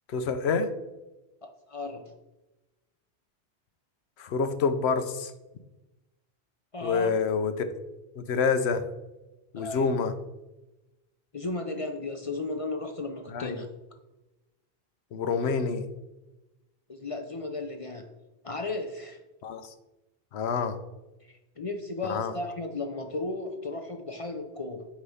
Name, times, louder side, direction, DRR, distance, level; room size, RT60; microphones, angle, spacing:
voice 1, 0.1-0.7 4.2-5.3 6.8-7.7 8.2-8.9 9.5-10.1 13.3-13.6 15.1-15.9 19.4-19.7 20.3-20.8 22.1-22.3, left 5 dB, 80° left, 10 dB, 1.0 m, -27 dB
voice 2, 1.4-2.1 6.7-7.2 9.5-9.9 11.3-13.7 16.9-18.1 18.4-19.2 21.2-24.9, left 2 dB, 40° left, 5 dB, 0.6 m, -35 dB
8.3 x 3.2 x 5.5 m, 1.0 s
omnidirectional pair, 1.1 m